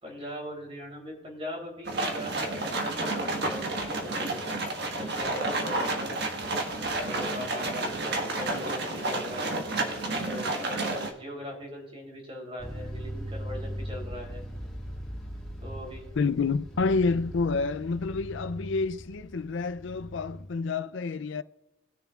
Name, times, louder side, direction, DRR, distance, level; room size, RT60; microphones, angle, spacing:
voice 1, 0.0-4.4 4.9-6.1 7.0-9.6 10.1-14.4 15.6-16.0, left 1 dB, 30° right, 3.2 m, -40 dB
sound 1, 1.9-11.1, right 2 dB, 50° right, 1.4 m, -30 dB
sound 2, 12.6-20.5, equal, 5° left, 1.7 m, -39 dB
voice 2, 16.2-21.4, left 4 dB, 65° left, 0.4 m, -28 dB
20.5 x 6.8 x 2.4 m
head